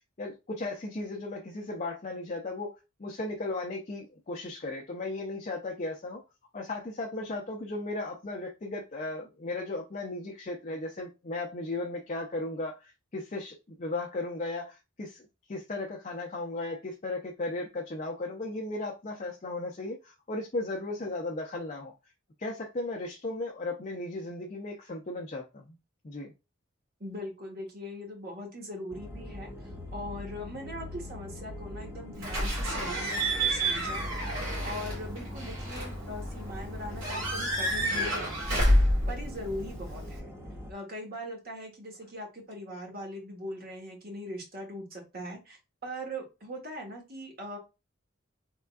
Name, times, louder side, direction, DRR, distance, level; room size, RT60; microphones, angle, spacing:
voice 1, 0.2-2.7 3.0-6.2 6.5-21.9 22.4-25.8 26.0-26.3, left 2 dB, 35° left, 0.5 m, -36 dB
voice 2, 27.0-38.6 39.1-40.3 40.7-47.6, equal, 50° right, 1.3 m, -41 dB
sound 1, 28.9-40.7, left 1 dB, 10° right, 0.5 m, -43 dB
Slam / Squeak / Alarm, 32.2-40.2, equal, 85° right, 1.9 m, -29 dB
3.6 x 3.3 x 2.3 m
head